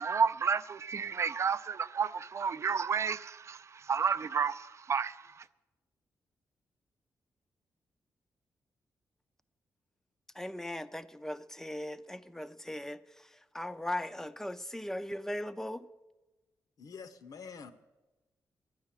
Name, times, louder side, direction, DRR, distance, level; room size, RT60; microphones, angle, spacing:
voice 1, 0.0-5.5, right 6 dB, 45° right, 0.4 m, -31 dB
voice 2, 10.3-15.9, left 1 dB, 5° left, 0.5 m, -39 dB
voice 3, 16.8-17.7, left 6 dB, 65° left, 0.9 m, -46 dB
11.5 x 9.6 x 7.4 m
cardioid pair, 105°, 7 cm